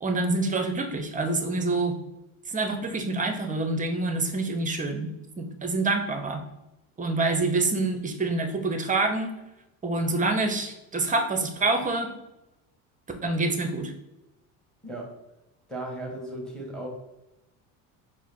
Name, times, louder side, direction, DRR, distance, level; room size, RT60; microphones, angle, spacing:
voice 1, 0.0-2.0 2.5-6.4 7.0-9.3 9.8-12.1 13.2-13.9, right 3 dB, 20° right, 6 dB, 0.6 m, -26 dB
voice 2, 15.7-16.9, right 1 dB, ahead, 0 dB, 1.5 m, -35 dB
4.6 x 2.1 x 4.5 m, 0.92 s
supercardioid pair, 100°, 39 cm